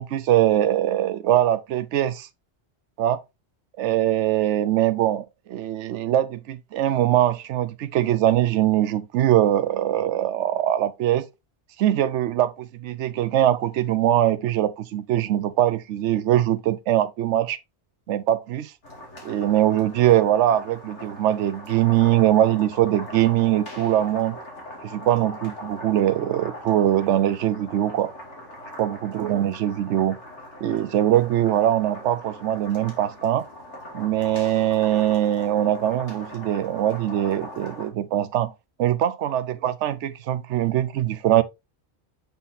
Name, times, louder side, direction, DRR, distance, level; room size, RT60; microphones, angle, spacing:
voice 1, 0.0-2.3 3.0-3.2 3.8-11.3 11.8-17.6 18.1-18.7 19.2-24.4 24.8-28.1 28.8-30.2 30.6-33.5 33.9-38.5 38.8-41.4, right 12 dB, 90° right, 0.9 m, -22 dB
sound 1, 18.8-37.9, left 1 dB, 85° left, 2.8 m, -41 dB
8.2 x 5.6 x 2.6 m
omnidirectional pair, 1.2 m